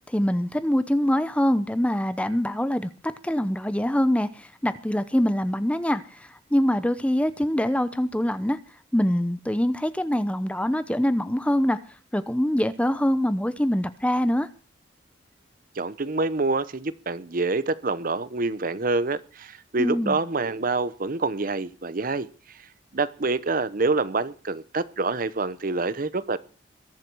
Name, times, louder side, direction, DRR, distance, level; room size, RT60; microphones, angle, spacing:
voice 1, 0.1-8.6 8.9-11.8 12.1-14.5 19.8-20.2, equal, 5° left, 0.7 m, -24 dB
voice 2, 15.8-22.3 22.9-26.4, right 3 dB, 45° right, 0.8 m, -26 dB
21.5 x 7.6 x 6.2 m
head